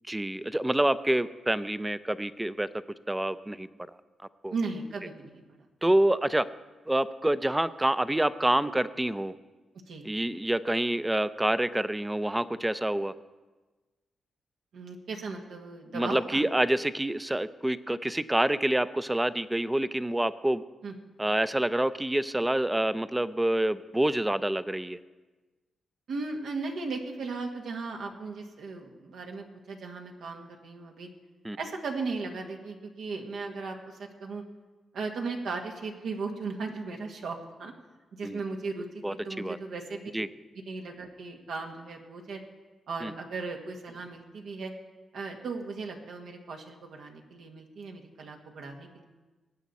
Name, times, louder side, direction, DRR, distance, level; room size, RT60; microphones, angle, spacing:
voice 1, 0.1-2.7 3.1-3.7 4.4-4.5 5.8-6.5 6.9-9.3 10.0-13.1 15.9-20.6 21.2-25.0 31.4-31.6 38.2-38.4 39.0-39.6 40.1-40.3 43.0-43.1, right 1 dB, 10° right, 14 dB, 0.6 m, -27 dB
voice 2, 4.5-5.4 9.9-10.1 14.7-16.4 20.8-20.9 26.1-31.1 31.5-34.4 34.9-37.7 38.1-40.1 40.5-42.4 42.9-44.7 45.1-49.0, right 4 dB, 80° right, 2 dB, 1.6 m, -37 dB
20.0 x 8.1 x 4.2 m, 1.2 s
cardioid pair, 65°, 0 cm